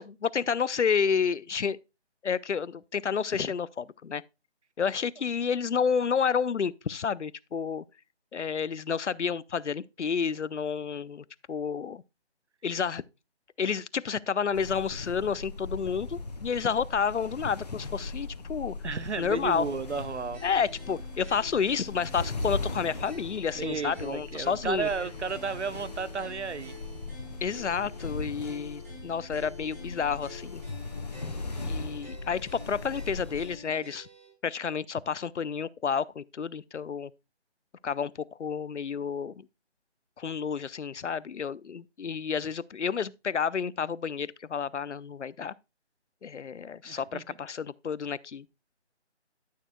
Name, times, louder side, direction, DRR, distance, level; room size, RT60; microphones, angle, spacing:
voice 1, 0.0-1.8 2.2-4.2 4.8-7.8 8.3-12.0 12.6-13.0 13.6-18.7 19.2-19.7 20.4-24.9 27.4-30.6 31.6-34.1 34.4-37.1 37.8-39.5 40.2-45.5 46.2-48.4, left 6 dB, 90° left, 0.6 m, -30 dB
sound 1, 14.5-33.6, left 3 dB, 35° left, 1.0 m, -39 dB
voice 2, 18.8-20.4 23.6-26.7 46.8-47.2, right 5 dB, 75° right, 1.0 m, -33 dB
sound 2, 19.9-34.3, left 2 dB, 10° right, 1.8 m, -49 dB
12.5 x 6.6 x 2.2 m
figure-of-eight pair, 165°, 34 cm